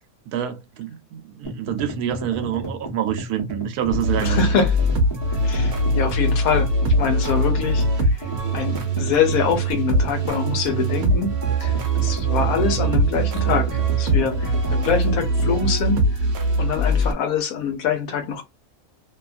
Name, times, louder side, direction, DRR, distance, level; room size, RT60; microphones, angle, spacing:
voice 1, 0.3-4.7, right 10 dB, 80° right, 1.1 m, -27 dB
sound 1, 1.5-15.8, left 1 dB, 20° left, 0.9 m, -34 dB
sound 2, 3.9-17.1, right 1 dB, 55° right, 0.9 m, -22 dB
voice 2, 4.2-4.8 5.4-6.7 7.0-7.8 8.2-8.3 8.5-11.7 12.0-16.0 16.6-18.4, left 6 dB, 70° left, 1.1 m, -24 dB
2.7 x 2.4 x 2.4 m
omnidirectional pair, 1.6 m